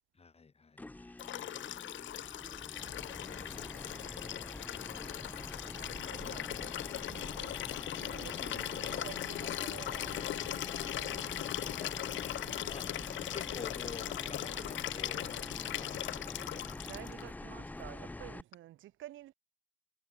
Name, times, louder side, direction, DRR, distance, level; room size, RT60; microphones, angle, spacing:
voice 1, 0.2-1.2 4.1-5.4 11.3-12.1 12.7-12.9 13.3-16.7, left 4 dB, 30° left, 3.0 m, -51 dB
sound 1, 0.8-18.4, left 2 dB, 10° left, 0.4 m, -46 dB
Liquid, 1.2-17.2 18.5-18.6, left 13 dB, 70° left, 1.0 m, -39 dB
voice 2, 2.2-4.1 5.7-11.5 16.5-19.3, right 14 dB, 80° right, 1.2 m, -52 dB
cardioid pair, 90°, 20 cm